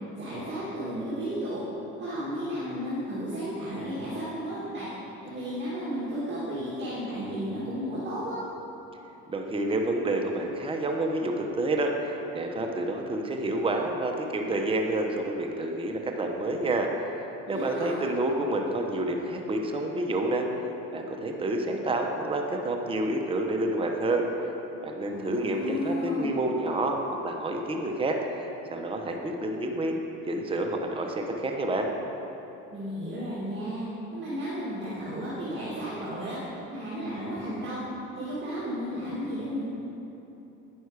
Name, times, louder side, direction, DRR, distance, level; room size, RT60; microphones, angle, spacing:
voice 1, 0.1-1.6 2.0-4.9 5.2-8.4 17.5-18.0 25.0-26.3 32.7-33.8 34.1-36.4 36.7-37.8 38.1-39.6, equal, 40° right, -9 dB, 2.0 m, -33 dB
voice 2, 9.3-16.9 17.5-20.4 20.9-24.3 24.8-27.0 27.2-30.0 30.3-31.9, right 2 dB, 20° right, 2 dB, 0.9 m, -29 dB
9.3 x 6.3 x 4.8 m, 3.0 s
supercardioid pair, 90°, 29 cm